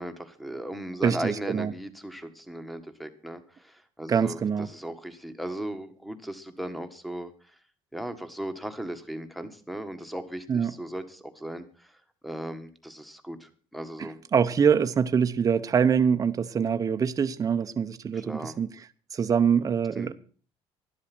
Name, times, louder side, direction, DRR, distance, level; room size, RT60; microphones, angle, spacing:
voice 1, 0.0-7.3 7.9-11.9 12.2-14.2 18.1-18.5 19.9-20.1, right 1 dB, ahead, 1.6 m, -37 dB
voice 2, 1.0-1.7 4.1-4.7 10.5-10.7 14.0-18.7 19.1-20.1, right 7 dB, 30° right, 0.9 m, -24 dB
12.0 x 12.0 x 6.1 m
cardioid pair, 125°, 11 cm